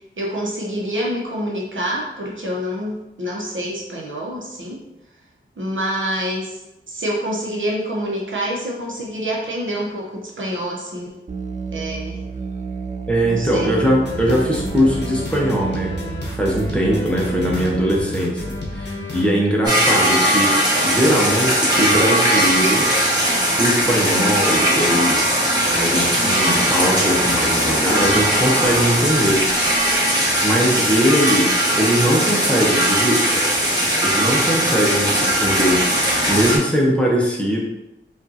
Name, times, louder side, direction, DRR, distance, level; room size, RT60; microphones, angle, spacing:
voice 1, 0.2-4.8 5.6-6.6 6.9-11.2 11.7-12.2 13.3-13.7 35.0-35.1, equal, 65° right, -3 dB, 0.9 m, -27 dB
Musical instrument, 11.3-18.0, right 4 dB, 35° right, 0.4 m, -30 dB
voice 2, 13.1-15.9 16.3-18.4 18.7-22.8 23.5-25.2 25.7-29.4 29.8-33.4 34.0-37.6, equal, 5° left, -4 dB, 0.9 m, -20 dB
sound 1, 14.0-19.3, left 2 dB, 55° left, 0.9 m, -30 dB
sound 2, 19.6-36.6, equal, 20° right, 1.5 m, -19 dB
5.2 x 2.5 x 2.8 m, 0.94 s
wide cardioid pair, 90°, 21 cm